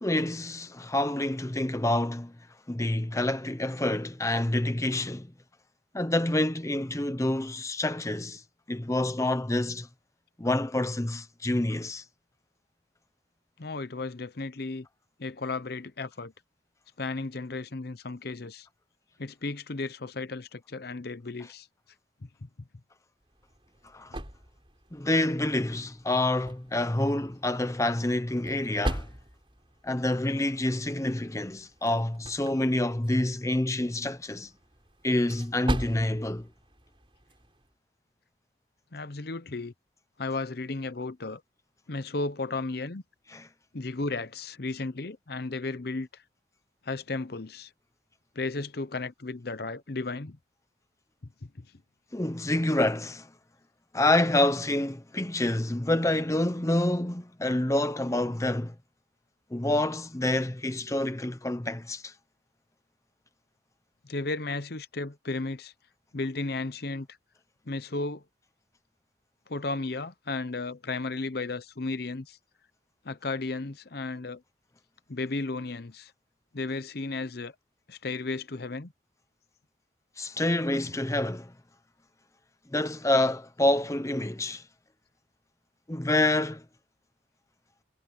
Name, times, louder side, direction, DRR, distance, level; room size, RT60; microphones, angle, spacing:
voice 1, 0.0-2.3 2.7-5.3 5.9-8.4 8.7-9.9 10.4-12.0 23.8-24.2 24.9-29.1 29.8-34.5 35.0-36.5 43.3-43.5 52.1-53.3 53.9-58.7 59.5-62.1 80.2-81.5 82.7-84.6 85.9-86.6, left 1 dB, 15° left, 0.8 m, -27 dB
voice 2, 13.6-14.9 15.2-16.3 17.0-18.7 19.2-21.7 22.2-22.5 38.9-39.7 40.2-41.4 41.9-43.0 43.7-46.2 46.8-47.7 48.3-50.4 51.4-51.7 64.0-65.7 66.1-67.1 67.7-68.2 69.5-72.4 73.0-74.4 75.1-76.1 76.5-77.6 77.9-78.9, left 3 dB, 55° left, 0.8 m, -34 dB
sound 1, 23.2-37.7, right 1 dB, 25° right, 7.5 m, -41 dB
head